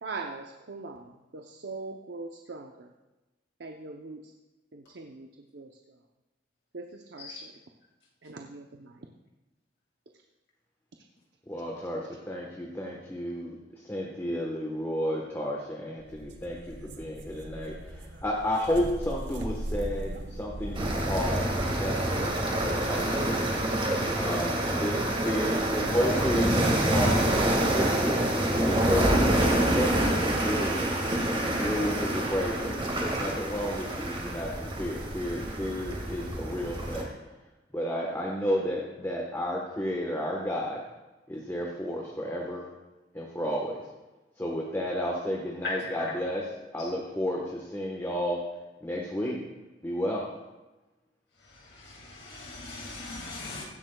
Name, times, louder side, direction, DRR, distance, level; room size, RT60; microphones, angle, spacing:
voice 1, 0.0-2.9 3.6-4.2 4.7-5.3 5.5-5.7 6.7-7.5 8.2-8.9, right 3 dB, 70° right, 3 dB, 0.7 m, -41 dB
voice 2, 11.5-13.6 13.9-21.4 21.7-23.5 24.1-27.1 27.7-30.9 31.5-37.1 37.7-40.8 41.3-42.7 43.1-43.8 44.4-46.5 46.7-48.5 48.8-49.4 49.8-50.3, equal, 15° left, -2 dB, 1.2 m, -32 dB
sound 1, 16.0-22.0, right 1 dB, 90° right, 1.1 m, -39 dB
sound 2, 20.7-37.0, right 1 dB, 30° right, 1.8 m, -27 dB
voice 3, 45.6-46.1 46.8-46.9 51.4-53.6, left 3 dB, 90° left, -2 dB, 2.2 m, -39 dB
16.0 x 12.0 x 2.3 m, 1.1 s
head